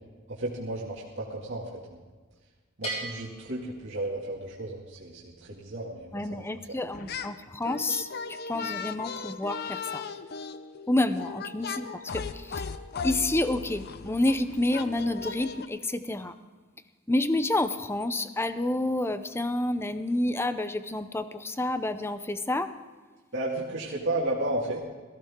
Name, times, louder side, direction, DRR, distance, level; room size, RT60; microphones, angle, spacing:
voice 1, 0.3-2.0 2.8-6.8 23.3-24.9, right 1 dB, 65° right, -6 dB, 2.3 m, -33 dB
Bell, 2.8-4.5, right 2 dB, 30° left, 4.5 m, -39 dB
voice 2, 6.1-10.0 10.9-12.6 13.0-16.3 17.1-22.7, left 1 dB, 10° left, 11 dB, 0.6 m, -29 dB
sound 1, 6.9-7.4 7.6-15.7, left 5 dB, 50° left, 0.6 m, -37 dB
18.0 x 15.0 x 3.7 m, 1.4 s
head